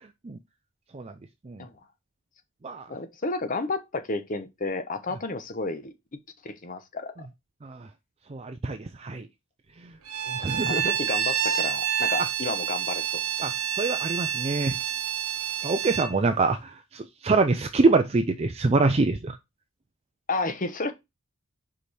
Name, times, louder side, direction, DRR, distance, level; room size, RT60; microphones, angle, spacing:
voice 1, 2.9-5.9 6.4-7.3 10.6-13.2 15.6-15.7 20.3-20.9, left 3 dB, 40° left, 1.0 m, -31 dB
voice 2, 8.3-9.3 10.3-10.8 12.2-12.3 13.4-14.8 15.6-19.4, right 3 dB, 30° right, 0.5 m, -25 dB
Bowed string instrument, 10.1-16.1, right 9 dB, 90° right, 1.0 m, -28 dB
5.2 x 4.8 x 4.2 m
head